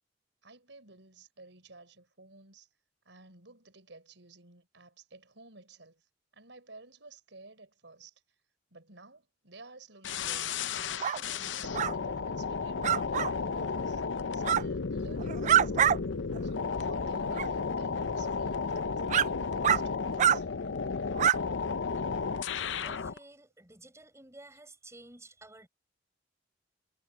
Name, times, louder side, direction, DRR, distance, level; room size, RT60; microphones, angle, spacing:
voice 1, 0.4-2.7 3.1-6.0 6.3-8.1 8.7-10.6 11.2-14.0 14.3-16.0 16.4-20.5, right 3 dB, 75° right, 5.6 m, -53 dB
sound 1, 10.0-23.2, left 5 dB, 80° left, 0.7 m, -33 dB
sound 2, 11.0-11.2 11.7-11.9 12.8-13.3 14.4-14.6 15.2-16.0 16.3-16.4 17.3-17.5 18.2-18.3 19.1-19.3 19.6-19.8 20.2-20.4 21.2-21.4, right 10 dB, 40° right, 0.3 m, -25 dB
voice 2, 22.7-25.7, right 2 dB, 15° right, 7.5 m, -52 dB
head